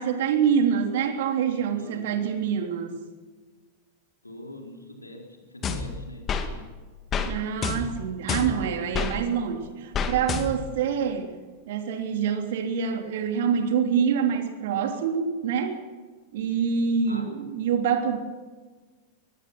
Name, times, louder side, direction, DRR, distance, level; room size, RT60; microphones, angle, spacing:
voice 1, 0.0-3.0 7.2-11.4 11.7-15.8 16.3-18.2, right 7 dB, 55° right, 5 dB, 3.2 m, -26 dB
voice 2, 4.2-6.2 6.5-6.6 16.3-16.7 17.1-17.2, left 1 dB, 85° left, 2 dB, 4.3 m, -43 dB
sound 1, 5.6-6.5 7.1-7.3 7.6-9.1 9.9-10.8, left 5 dB, 25° left, 2.2 m, -29 dB
24.0 x 20.0 x 6.1 m, 1.4 s
figure-of-eight pair, 90°, 0 cm